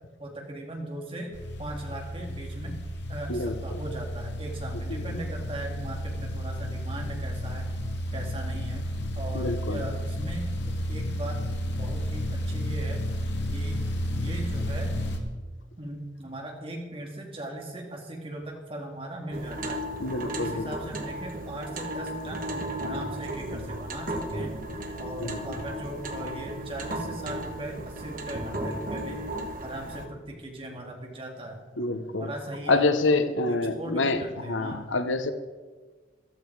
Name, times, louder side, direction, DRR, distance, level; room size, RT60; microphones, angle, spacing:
voice 1, 0.2-1.3 1.6-2.7 3.1-7.7 8.1-8.9 9.2-11.4 11.6-13.0 13.5-13.8 14.1-14.9 15.8-19.8 20.2-24.6 25.0-29.2 29.6-31.6 32.1-33.2 33.5-34.9, right 1 dB, 30° right, 1 dB, 2.4 m, -38 dB
sound 1, 1.3-15.2, equal, 70° left, 1.9 m, -32 dB
voice 2, 3.3-3.8 4.9-5.0 9.3-9.8 20.0-20.7 25.2-25.5 31.8-32.3 32.7-34.2 34.5-35.3, left 3 dB, 90° left, 10 dB, 0.9 m, -27 dB
sound 2, 19.3-30.0, right 1 dB, 45° right, 1.5 m, -35 dB
14.0 x 12.5 x 4.7 m, 1.4 s
head